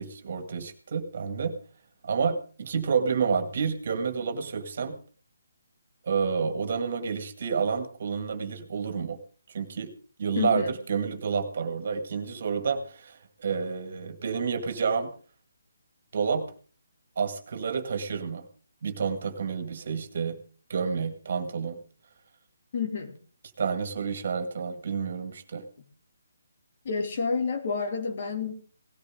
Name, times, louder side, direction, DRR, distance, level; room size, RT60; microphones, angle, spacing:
voice 1, 0.0-1.6 2.0-5.0 6.0-9.2 9.5-9.9 10.2-15.1 16.1-16.5 17.2-18.4 18.8-20.4 20.7-21.8 23.6-25.6, right 6 dB, 50° right, 9 dB, 2.0 m, -29 dB
voice 2, 10.4-10.7 22.7-23.2 26.8-28.5, left 5 dB, 45° left, 5 dB, 2.7 m, -29 dB
18.0 x 13.5 x 3.8 m, 0.39 s
figure-of-eight pair, 145°, 0 cm